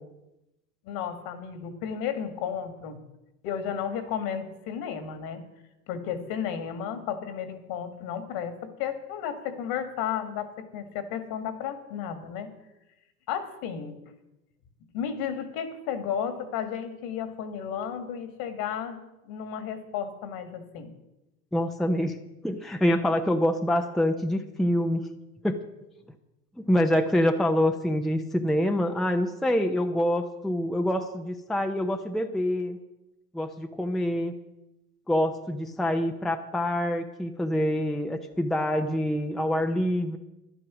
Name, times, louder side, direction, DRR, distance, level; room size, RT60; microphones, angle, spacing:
voice 1, 0.9-3.0 3.4-5.4 5.9-12.5 13.3-14.0 14.9-19.0 19.3-20.9, left 8 dB, 55° left, 9 dB, 2.1 m, -33 dB
voice 2, 21.5-22.2 22.4-25.1 25.4-25.6 26.6-32.8 33.3-34.3 35.1-40.2, left 1 dB, ahead, 5 dB, 0.7 m, -26 dB
11.5 x 11.0 x 6.2 m, 0.95 s
hypercardioid pair, 95°, 46 cm